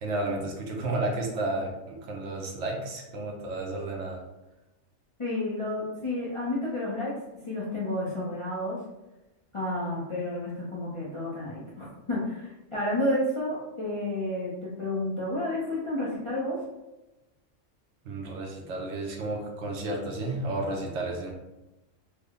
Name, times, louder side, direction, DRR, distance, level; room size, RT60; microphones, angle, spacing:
voice 1, 0.0-4.2 18.0-21.3, right 2 dB, 70° right, 1 dB, 0.9 m, -32 dB
voice 2, 5.2-7.1 7.5-8.8 9.5-16.6, left 1 dB, 35° left, -7 dB, 0.5 m, -31 dB
3.3 x 2.1 x 3.6 m, 1.0 s
omnidirectional pair, 1.3 m